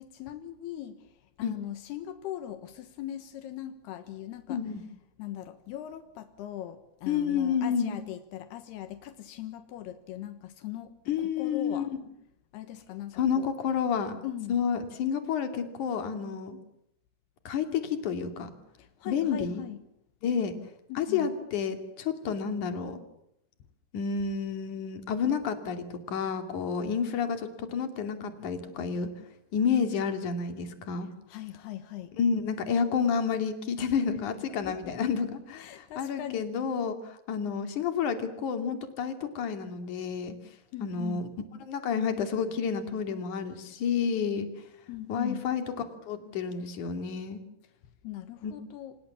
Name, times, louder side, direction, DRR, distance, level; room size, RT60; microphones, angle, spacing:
voice 1, 0.0-4.6 5.2-10.9 11.2-11.9 12.5-13.5 14.2-14.6 18.8-19.8 20.9-21.3 31.3-32.2 34.6-35.0 35.6-36.5 40.7-41.3 44.9-45.5 48.0-49.0, left 12 dB, 80° left, 10 dB, 3.3 m, -40 dB
voice 2, 4.5-4.8 7.1-8.0 11.1-12.0 13.2-14.2 14.5-16.6 17.5-18.5 19.1-19.6 20.2-20.5 21.0-23.0 23.9-29.1 29.5-31.1 32.2-40.3 40.8-41.3 41.6-44.5 45.1-45.6 46.1-47.4 48.4-48.5, left 6 dB, 55° left, 8 dB, 3.8 m, -30 dB
29.0 x 26.0 x 7.2 m, 0.73 s
omnidirectional pair, 4.6 m